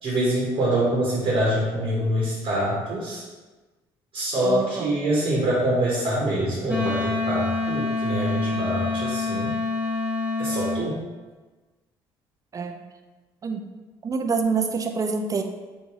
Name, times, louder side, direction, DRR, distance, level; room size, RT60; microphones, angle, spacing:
voice 1, 0.0-3.2 4.1-9.5 10.4-11.0, right 1 dB, 60° right, -6 dB, 1.0 m, -25 dB
voice 2, 4.4-5.0 12.5-12.8 13.4-13.6 14.0-15.4, right 5 dB, 35° right, 5 dB, 0.4 m, -26 dB
Wind instrument woodwind instrument, 6.7-10.8, left 3 dB, 15° right, 0.9 m, -26 dB
3.1 x 2.6 x 3.5 m, 1.2 s
hypercardioid pair, 60°, 10 cm